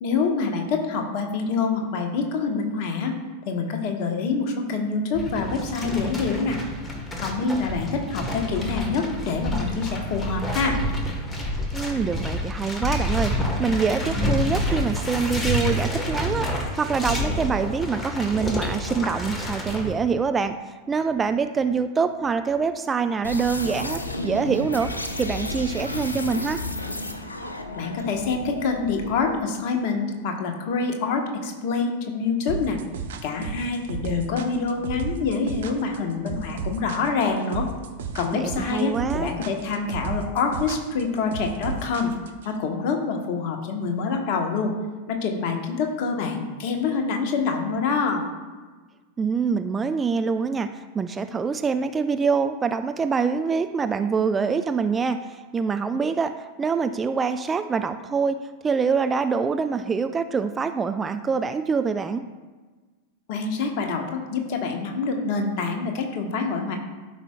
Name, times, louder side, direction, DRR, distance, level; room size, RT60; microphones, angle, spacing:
voice 1, 0.0-3.1 3.5-6.6 7.2-10.8 27.7-32.8 33.2-37.7 38.1-42.1 42.4-44.7 45.1-48.2 63.3-66.8, left 4 dB, 45° left, 3 dB, 1.1 m, -26 dB
sound 1, 5.1-19.9, left 1 dB, 15° left, 1.3 m, -28 dB
voice 2, 11.7-16.5 16.8-20.5 20.9-26.6 38.3-39.3 49.2-62.2, right 5 dB, 15° right, 9 dB, 0.3 m, -25 dB
sound 2, 23.2-29.4, left 2 dB, 80° left, 0.6 m, -32 dB
sound 3, 32.5-42.5, right 5 dB, 60° right, 0.6 m, -33 dB
12.5 x 5.6 x 2.3 m, 1.3 s
figure-of-eight pair, 90°, 0 cm